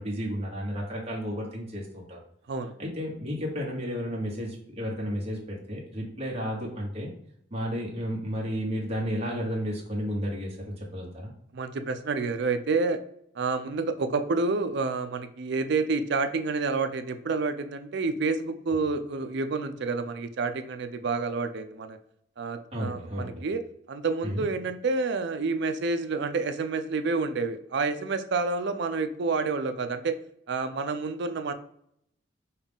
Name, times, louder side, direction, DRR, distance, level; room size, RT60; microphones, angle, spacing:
voice 1, 0.0-2.2 2.8-7.1 7.5-10.6 10.9-11.3 22.7-23.4 24.2-24.4, equal, 35° right, -3 dB, 1.3 m, -32 dB
voice 2, 11.5-13.0 13.4-22.0 22.4-23.6 23.9-30.1 30.5-31.5, right 4 dB, 65° right, 9 dB, 0.5 m, -29 dB
5.6 x 2.4 x 3.6 m, 0.71 s
head